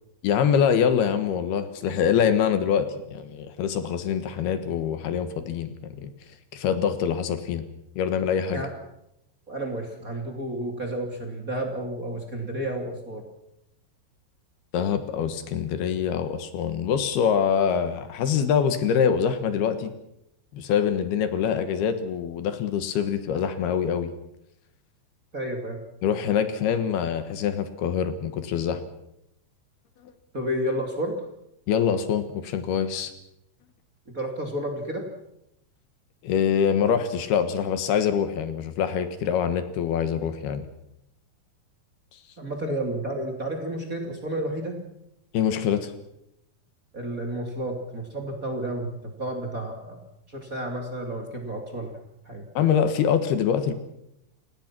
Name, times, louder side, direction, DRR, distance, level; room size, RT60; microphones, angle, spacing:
voice 1, 0.2-6.1 6.5-7.6 8.0-8.6 14.7-19.9 20.5-24.1 26.0-28.8 30.0-30.1 31.7-33.1 36.2-40.7 45.3-45.9 52.5-53.7, left 8 dB, 75° left, 10 dB, 3.3 m, -24 dB
voice 2, 9.5-13.2 25.3-25.8 30.3-31.2 34.1-35.0 42.4-44.8 46.9-50.0 50.3-52.0 52.2-52.5, right 1 dB, 25° right, 2 dB, 2.7 m, -31 dB
29.5 x 17.0 x 6.1 m, 0.82 s
omnidirectional pair, 4.6 m